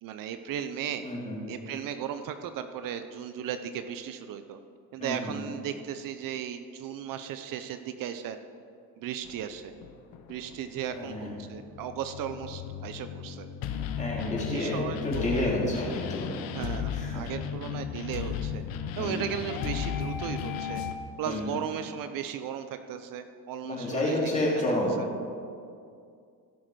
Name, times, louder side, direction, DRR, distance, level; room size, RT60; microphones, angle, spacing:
voice 1, 0.0-1.0 1.5-4.6 4.9-8.4 9.0-9.7 10.3-13.5 14.5-15.4 16.5-18.6 19.0-20.8 21.2-25.1, right 9 dB, 65° right, 9 dB, 0.7 m, -36 dB
voice 2, 1.0-1.6 5.0-5.4 10.9-11.4 14.0-16.4 16.9-17.3 19.0-19.2 21.2-21.6 23.6-24.9, left 1 dB, 20° left, -4 dB, 2.9 m, -30 dB
Orchestral Metal, 9.2-20.9, left 8 dB, 75° left, 0.9 m, -35 dB
16.0 x 6.5 x 4.7 m, 2.4 s
cardioid pair, 125°, 36 cm